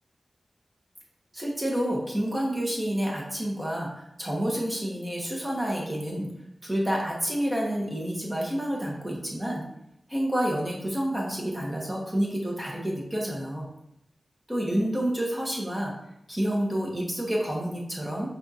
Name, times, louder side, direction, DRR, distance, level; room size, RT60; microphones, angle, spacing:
voice 1, 1.3-6.3 6.6-9.6 10.1-13.7 14.5-15.9 16.3-18.3, equal, 15° right, -3 dB, 0.9 m, -29 dB
5.3 x 2.4 x 2.7 m, 0.80 s
wide cardioid pair, 60°, 0 cm